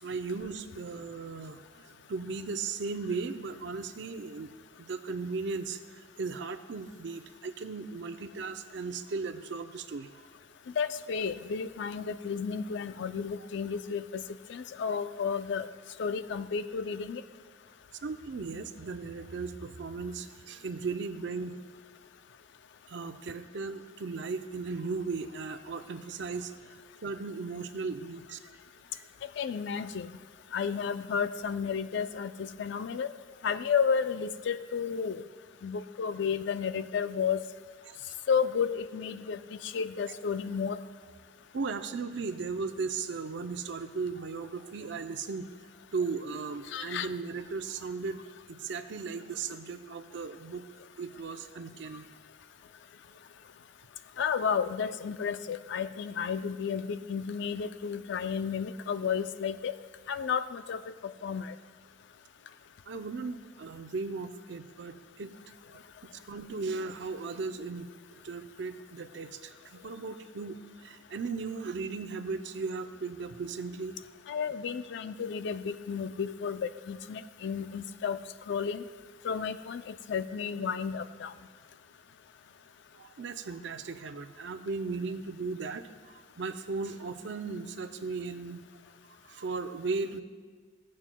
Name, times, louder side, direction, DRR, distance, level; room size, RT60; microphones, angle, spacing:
voice 1, 0.0-4.5 4.8-10.1 18.0-21.6 22.9-26.5 27.0-28.4 28.9-29.0 37.9-38.0 41.5-45.5 45.9-48.2 48.5-52.1 62.9-65.3 65.7-65.8 66.1-74.0 83.0-88.6 89.2-90.2, right 4 dB, 65° right, 8 dB, 0.5 m, -37 dB
voice 2, 10.8-14.2 14.5-15.7 16.0-17.2 29.4-30.1 30.5-33.1 33.4-35.2 35.6-37.4 38.3-40.8 46.7-47.1 54.2-59.7 60.1-60.8 61.2-61.5 74.3-78.2 78.5-78.8 79.2-81.3, left 6 dB, 65° left, 12 dB, 0.4 m, -32 dB
15.5 x 7.4 x 2.2 m, 1.5 s
head